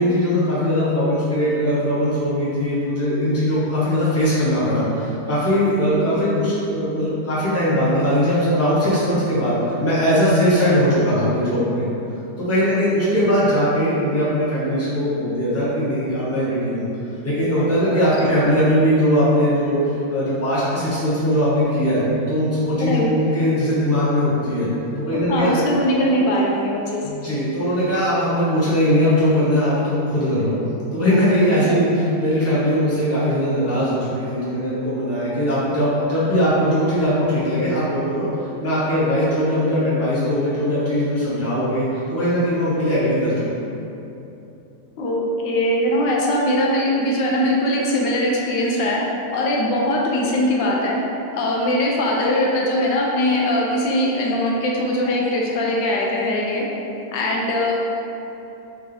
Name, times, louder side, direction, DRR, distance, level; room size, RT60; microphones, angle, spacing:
voice 1, 0.0-11.9 12.4-16.8 17.2-19.8 20.1-22.0 22.3-24.7 25.0-25.5 27.0-30.5 30.9-38.3 38.6-43.6, equal, 10° left, -10 dB, 0.8 m, -20 dB
voice 2, 25.1-27.0 31.7-31.8 45.0-49.0 49.3-51.0 51.3-56.6 57.1-57.7, left 1 dB, 85° left, -2 dB, 1.3 m, -21 dB
4.0 x 3.5 x 3.3 m, 2.9 s
omnidirectional pair, 1.9 m